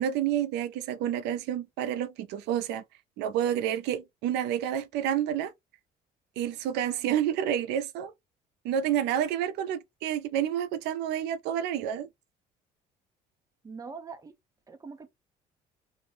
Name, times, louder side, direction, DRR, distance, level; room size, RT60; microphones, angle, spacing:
voice 1, 0.0-2.8 3.2-5.5 6.4-8.1 8.6-12.1, right 10 dB, 85° right, 0.4 m, -29 dB
voice 2, 13.6-14.3 14.7-15.1, right 5 dB, 20° right, 0.6 m, -42 dB
2.5 x 2.1 x 3.2 m
cardioid pair, 110°, 17 cm